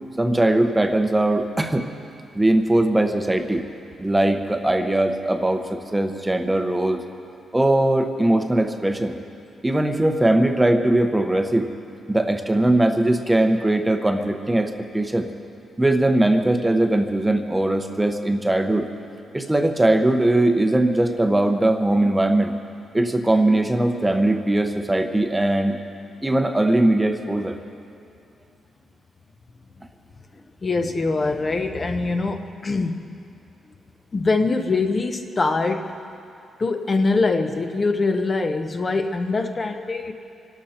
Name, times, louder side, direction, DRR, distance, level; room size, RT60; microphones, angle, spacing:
voice 1, 0.2-1.8 2.3-3.6 4.0-7.0 7.5-9.2 9.6-11.7 12.1-15.3 15.8-18.9 19.3-22.5 22.9-25.8 26.2-27.6, right 1 dB, 10° right, 6 dB, 0.8 m, -20 dB
voice 2, 30.6-33.0 34.1-36.0 36.6-40.1, left 3 dB, 25° left, 6 dB, 0.7 m, -23 dB
25.5 x 12.5 x 4.3 m, 2.7 s
wide cardioid pair, 145°, 0 cm